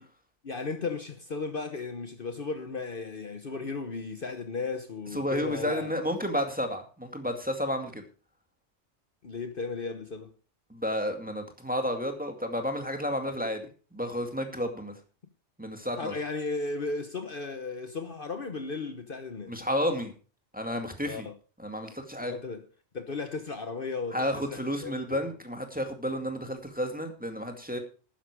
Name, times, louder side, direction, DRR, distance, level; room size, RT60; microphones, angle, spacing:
voice 1, 0.4-5.9 9.2-10.3 16.0-19.5 21.1-21.3 22.2-22.7 22.9-25.2, left 4 dB, 50° left, 1.2 m, -35 dB
voice 2, 5.1-8.0 10.7-15.0 15.6-16.1 19.5-20.1 20.5-21.3 21.6-22.3 24.1-27.8, equal, 5° right, 2.1 m, -31 dB
12.0 x 9.9 x 4.8 m
omnidirectional pair, 1.2 m